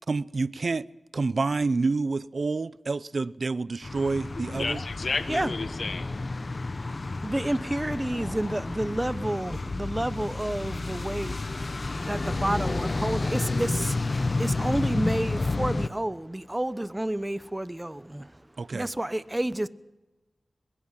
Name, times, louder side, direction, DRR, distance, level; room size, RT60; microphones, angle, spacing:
voice 1, 0.1-0.9 1.1-4.8 18.6-18.9, right 3 dB, 65° right, 0.6 m, -28 dB
sound 1, 3.8-15.9, left 3 dB, 50° left, 1.1 m, -30 dB
voice 2, 4.5-6.0, left 4 dB, 70° left, 1.4 m, -31 dB
voice 3, 6.9-11.4 12.0-18.4 18.7-19.7, right 1 dB, 20° right, 1.0 m, -30 dB
22.5 x 21.5 x 5.9 m
cardioid pair, 45°, 0 cm